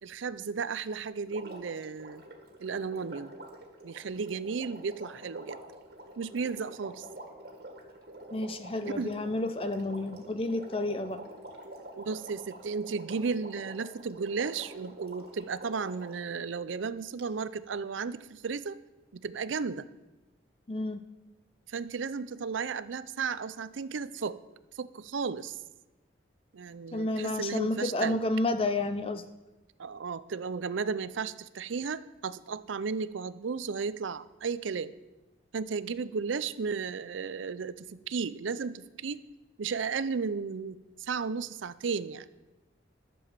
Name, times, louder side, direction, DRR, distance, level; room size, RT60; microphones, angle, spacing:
voice 1, 0.0-2.2 2.6-3.3 3.8-5.6 6.2-7.1 8.9-9.1 12.0-18.8 19.1-19.9 21.7-24.4 24.7-25.6 26.5-28.2 29.8-34.9 35.5-39.2 39.6-42.3, right 5 dB, 85° right, 15 dB, 0.5 m, -34 dB
Water, 1.3-16.3 17.2-17.3, right 1 dB, 55° right, 1.8 m, -47 dB
voice 2, 8.3-11.2 20.7-21.0 26.9-29.2, left 2 dB, 30° left, 10 dB, 0.5 m, -30 dB
11.5 x 7.0 x 7.2 m, 1.1 s
head